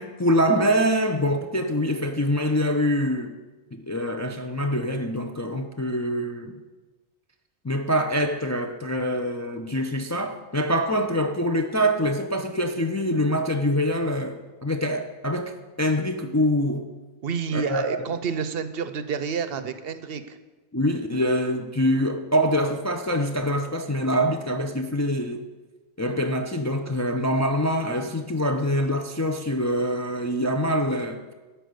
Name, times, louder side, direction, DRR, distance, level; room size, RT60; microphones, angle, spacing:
voice 1, 0.0-3.4 3.7-6.6 7.6-16.9 17.5-18.0 20.7-25.4 26.0-31.3, equal, 25° left, 0.4 m, -25 dB
voice 2, 17.2-20.4, right 6 dB, 65° right, 0.8 m, -29 dB
11.5 x 4.7 x 8.0 m
omnidirectional pair, 1.1 m